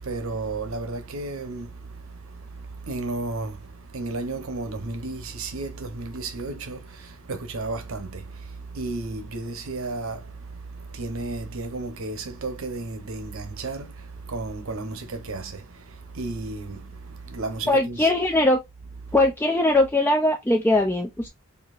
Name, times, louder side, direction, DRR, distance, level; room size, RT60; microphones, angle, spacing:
voice 1, 0.0-18.1 19.0-19.2, right 3 dB, 75° right, 0.9 m, -33 dB
voice 2, 17.7-18.6 19.1-21.3, left 1 dB, 10° left, 0.4 m, -20 dB
4.5 x 2.8 x 2.5 m
head